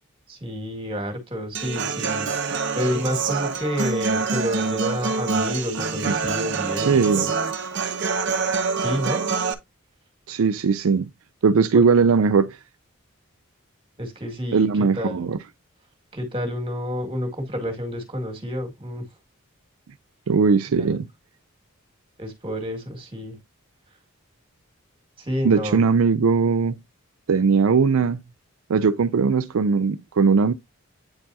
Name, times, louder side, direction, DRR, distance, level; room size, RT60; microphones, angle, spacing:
voice 1, 0.3-7.4 7.8-7.9 8.7-9.3 14.0-15.3 16.1-19.1 20.8-21.0 22.2-23.4 25.2-25.8, equal, 25° right, 2.0 m, -29 dB
Human voice / Acoustic guitar, 1.5-9.5, right 4 dB, 55° right, 0.8 m, -26 dB
voice 2, 6.9-7.3 10.3-11.1 11.4-12.6 14.5-15.4 20.3-21.1 25.4-26.8 27.3-28.2 28.7-30.5, right 5 dB, 75° right, 0.4 m, -19 dB
8.6 x 4.5 x 2.7 m
head